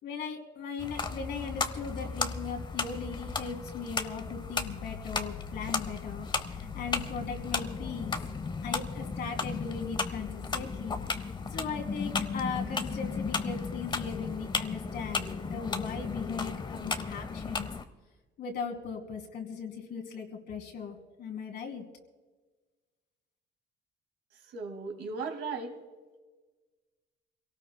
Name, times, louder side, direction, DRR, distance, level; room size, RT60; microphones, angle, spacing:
voice 1, 0.0-8.2 8.6-17.7 18.4-21.8, left 5 dB, 65° left, 2 dB, 2.9 m, -38 dB
sound 1, 0.8-17.8, left 4 dB, 25° left, 0.8 m, -35 dB
voice 2, 24.5-25.8, right 4 dB, 75° right, 4 dB, 2.1 m, -36 dB
28.0 x 18.0 x 2.2 m, 1.3 s
cardioid pair, 105°, 19 cm